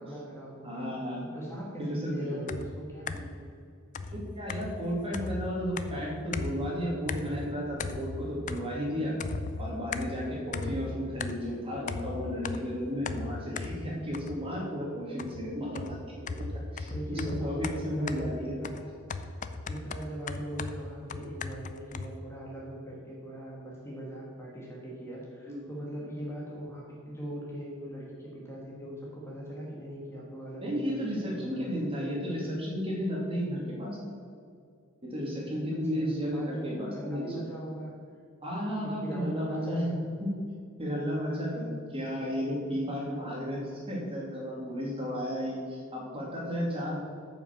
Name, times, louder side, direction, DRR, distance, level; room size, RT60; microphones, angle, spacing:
voice 1, 0.0-1.0 1.3-3.4 16.9-18.9 19.2-32.3 35.7-38.0 38.8-40.1 41.3-41.7 43.1-43.3, right 1 dB, 10° left, -4 dB, 1.6 m, -40 dB
voice 2, 0.6-1.5 1.8-2.4 4.1-9.1 9.6-16.0 16.4-16.5 16.7-18.6 25.5-25.6 30.6-34.2 35.0-37.3 38.4-39.9 40.2-40.3 40.8-41.7 41.9-43.6 43.9-47.0, equal, 25° right, -3 dB, 2.3 m, -33 dB
sound 1, 2.5-3.4 3.9-6.8 7.1-7.5 7.8-8.9 9.2-11.6 11.9-14.6 15.2-22.2, left 3 dB, 35° left, 0.4 m, -37 dB
8.7 x 5.9 x 7.1 m, 2.3 s
head